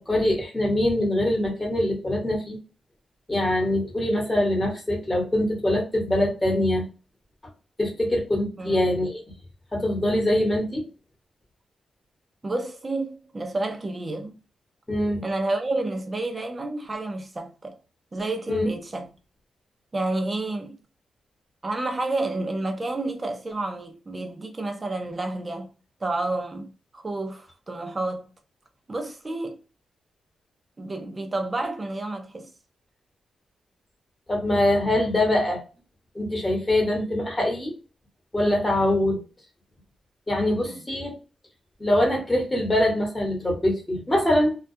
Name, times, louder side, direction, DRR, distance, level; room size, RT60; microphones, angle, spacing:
voice 1, 0.0-2.6 3.3-6.8 7.8-9.2 9.7-10.9 14.9-15.2 18.5-18.7 34.3-35.6 36.1-37.7 38.3-39.2 40.3-41.1 41.8-44.6, left 1 dB, 15° left, 1.0 m, -23 dB
voice 2, 8.6-8.9 12.4-14.4 15.2-17.8 18.1-19.1 19.9-20.8 21.6-25.7 26.0-26.7 26.9-28.3 28.9-29.6 30.8-32.5 40.6-40.9, right 2 dB, 20° right, 0.5 m, -30 dB
2.3 x 2.2 x 2.5 m
wide cardioid pair, 145°, 0 cm